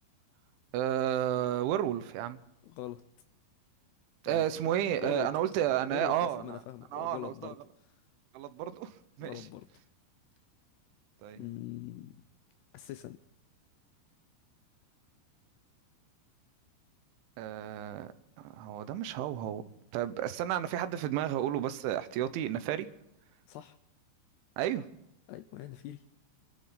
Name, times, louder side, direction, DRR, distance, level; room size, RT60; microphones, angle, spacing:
voice 1, 0.7-2.4 4.2-6.6 6.9-7.5 8.3-9.5 11.2-11.4 17.4-18.1 18.4-19.6 19.9-22.9 24.6-24.9, right 11 dB, 85° right, 12 dB, 3.4 m, -32 dB
voice 2, 2.6-3.0 4.3-4.7 5.0-5.3 5.9-7.6 9.2-9.7 11.4-12.1 12.7-13.2 23.5-23.8 25.3-26.0, left 14 dB, 80° left, 10 dB, 2.4 m, -42 dB
27.0 x 12.0 x 4.0 m, 0.80 s
omnidirectional pair, 5.3 m